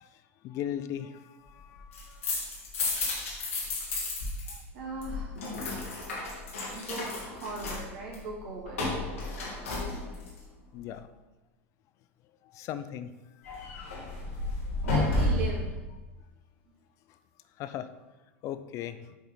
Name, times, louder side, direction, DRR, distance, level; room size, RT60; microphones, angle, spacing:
voice 1, 0.0-2.5 4.5-4.6 5.1-5.2 10.7-11.1 12.4-13.8 14.2-14.9 17.1-17.2 17.6-17.9 18.4-19.2, left 10 dB, 50° left, 11 dB, 0.5 m, -40 dB
sound 1, 1.8-4.5 4.8-10.4 13.4-15.7, left 2 dB, 85° left, 2.4 m, -32 dB
voice 2, 4.7-5.3 6.7-8.8 14.8-15.7, right 3 dB, 65° right, -2 dB, 2.5 m, -38 dB
8.0 x 5.0 x 4.0 m, 1.1 s
hypercardioid pair, 90°, 7 cm